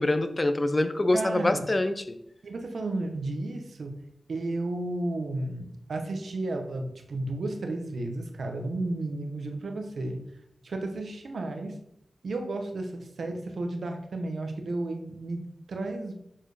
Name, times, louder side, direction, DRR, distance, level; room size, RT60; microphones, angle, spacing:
voice 1, 0.0-2.2, left 2 dB, 35° left, 9 dB, 0.7 m, -25 dB
voice 2, 1.1-1.6 2.4-3.9 4.3-10.2 10.6-11.8 12.2-16.2, right 2 dB, 85° right, 4 dB, 1.1 m, -33 dB
7.2 x 4.5 x 5.1 m, 0.77 s
wide cardioid pair, 75°, 0 cm